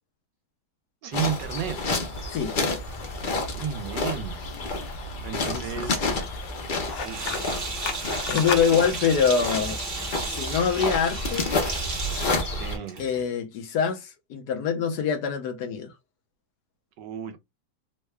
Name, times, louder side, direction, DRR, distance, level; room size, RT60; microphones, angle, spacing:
voice 1, 1.0-1.8 3.5-4.5 5.2-6.1 7.0-7.6 12.6-13.0 17.0-17.4, right 8 dB, 80° right, 1.4 m, -33 dB
sound 1, 1.1-12.8, left 2 dB, 50° left, 0.6 m, -30 dB
sound 2, 1.6-8.7, left 5 dB, 85° left, 1.4 m, -37 dB
voice 2, 5.5-5.8 8.3-9.8 10.2-11.5 13.0-15.9, left 7 dB, 70° left, 1.2 m, -25 dB
Sink (filling or washing), 6.8-13.2, right 4 dB, 50° right, 1.2 m, -34 dB
3.7 x 2.2 x 3.1 m
omnidirectional pair, 1.9 m